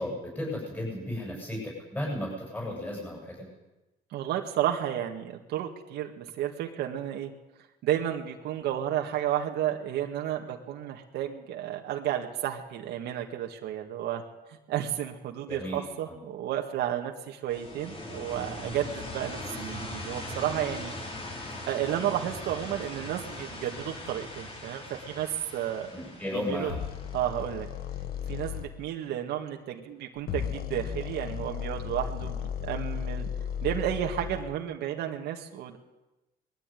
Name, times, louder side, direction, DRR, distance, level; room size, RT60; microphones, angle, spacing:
voice 1, 0.0-3.5 15.5-15.8 16.1-16.2 25.9-26.8, left 1 dB, 10° left, -2 dB, 8.0 m, -34 dB
voice 2, 4.1-7.3 7.8-14.2 14.5-20.9 21.7-25.9 26.3-26.7 27.1-27.7 28.3-33.3 33.6-35.8, right 11 dB, 80° right, 2 dB, 1.9 m, -32 dB
sound 1, 17.5-28.2, left 1 dB, 35° left, 5.2 m, -40 dB
sound 2, 26.7-28.7 30.2-34.5, left 8 dB, 65° left, 1.7 m, -35 dB
21.0 x 14.0 x 9.4 m, 1.0 s
cardioid pair, 110°, 17 cm